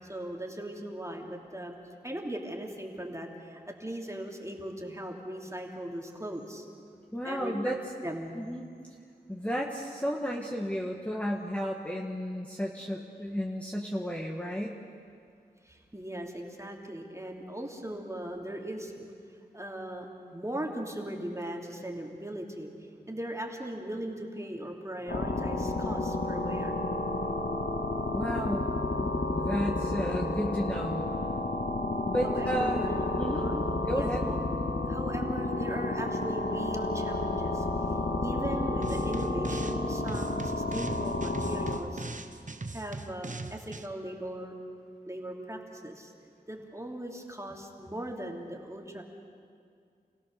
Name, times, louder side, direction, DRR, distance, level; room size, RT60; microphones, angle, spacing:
voice 1, 0.1-1.8 2.0-6.7 7.2-7.7 8.0-8.3 15.6-18.9 19.5-20.1 20.3-22.7 23.1-26.8 32.2-33.0 33.3-34.4 34.9-37.6 38.2-42.0 42.7-44.5 45.1-46.1 46.5-49.0, right 1 dB, 20° right, 1 dB, 2.9 m, -39 dB
voice 2, 7.1-7.8 8.4-8.7 9.3-14.8 28.1-28.6 29.0-31.1 32.1-32.9 33.2-33.5 33.9-34.2, equal, 10° left, -1 dB, 1.7 m, -33 dB
sound 1, 25.1-41.8, left 2 dB, 60° left, 2.0 m, -31 dB
sound 2, 38.8-39.8 40.1-43.9, right 3 dB, 50° right, 1.1 m, -40 dB
28.0 x 16.5 x 6.8 m, 2.3 s
wide cardioid pair, 50°, 17 cm